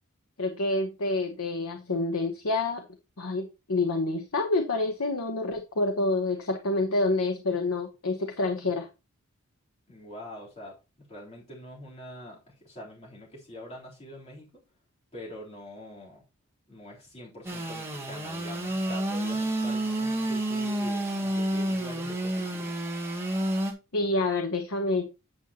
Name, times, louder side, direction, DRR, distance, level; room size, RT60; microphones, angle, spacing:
voice 1, 0.4-2.8 3.2-8.9 23.9-25.1, left 2 dB, 75° left, 1.1 m, -28 dB
voice 2, 9.9-14.6 15.1-16.2 16.7-22.7, equal, 30° left, 3.6 m, -44 dB
Engine / Sawing, 17.4-23.7, right 1 dB, 10° right, 1.6 m, -29 dB
9.0 x 7.1 x 2.9 m
head